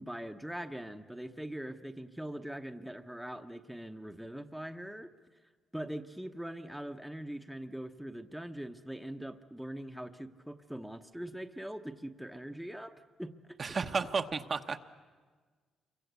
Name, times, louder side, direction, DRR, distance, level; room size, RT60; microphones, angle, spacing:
voice 1, 0.0-5.1 5.7-13.3, right 1 dB, ahead, 5 dB, 1.0 m, -42 dB
voice 2, 13.6-14.8, right 5 dB, 40° right, 6 dB, 1.0 m, -32 dB
27.0 x 23.5 x 8.2 m, 1.5 s
cardioid pair, 90°, 0 cm